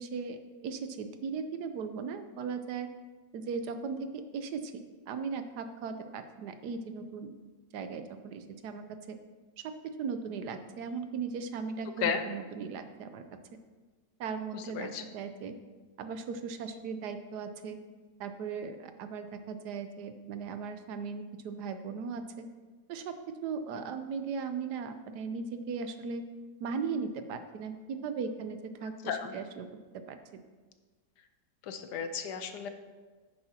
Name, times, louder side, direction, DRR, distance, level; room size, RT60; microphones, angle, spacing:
voice 1, 0.0-2.9 3.3-7.3 7.7-9.2 9.6-9.7 10.0-13.2 14.2-15.5 16.0-17.8 18.2-22.5 22.9-23.1 23.4-26.2 26.6-29.7 29.9-30.2, right 5 dB, 75° right, 9 dB, 1.2 m, -38 dB
voice 2, 14.5-15.0 29.0-29.3 31.6-32.7, left 7 dB, 75° left, 8 dB, 1.3 m, -34 dB
10.5 x 9.8 x 2.8 m, 1.3 s
omnidirectional pair, 1.8 m